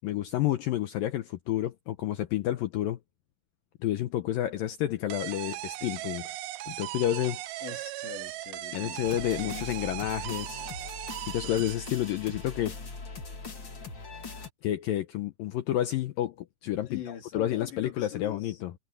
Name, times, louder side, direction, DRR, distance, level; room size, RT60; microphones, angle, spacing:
voice 1, 0.0-3.0 3.8-6.3 6.7-7.4 8.7-10.7 11.3-12.8 14.6-16.4 16.6-18.7, left 13 dB, 90° left, 2.0 m, -30 dB
sound 1, 5.1-12.4, right 16 dB, 75° right, 2.4 m, -38 dB
voice 2, 7.6-9.1 9.4-9.7 16.9-18.6, left 10 dB, 70° left, 5.7 m, -42 dB
sound 2, 9.0-14.5, left 3 dB, 30° left, 2.6 m, -41 dB
omnidirectional pair, 5.2 m